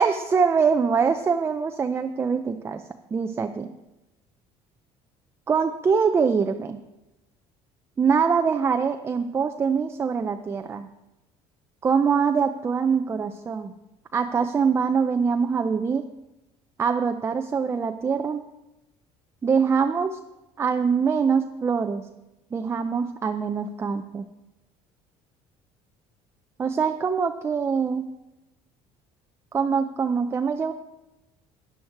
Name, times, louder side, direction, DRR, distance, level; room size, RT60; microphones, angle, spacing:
voice 1, 0.0-2.8 3.1-3.7 5.5-6.8 8.0-10.9 11.8-13.7 14.1-16.0 16.8-18.4 19.4-20.2 20.6-22.0 22.5-24.2 26.6-28.1 29.5-30.7, right 6 dB, 20° right, 7 dB, 0.5 m, -23 dB
13.0 x 9.8 x 4.6 m, 0.98 s
cardioid pair, 135°, 12 cm